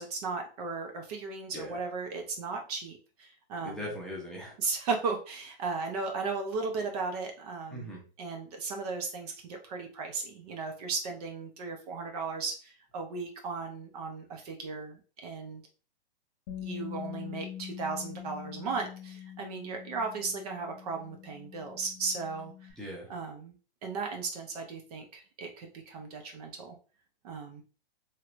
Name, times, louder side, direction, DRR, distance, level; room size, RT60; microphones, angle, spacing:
voice 1, 0.0-3.9 4.6-15.6 16.6-22.7 23.1-23.6 23.8-26.8 27.2-27.6, right 4 dB, 40° right, 3 dB, 0.7 m, -36 dB
voice 2, 3.6-4.6 7.7-8.0 22.8-23.1, equal, ahead, -3 dB, 0.7 m, -40 dB
Bass guitar, 16.5-22.7, left 10 dB, 45° left, 0.8 m, -44 dB
3.2 x 2.8 x 2.4 m, 0.36 s
hypercardioid pair, 130°, 30 cm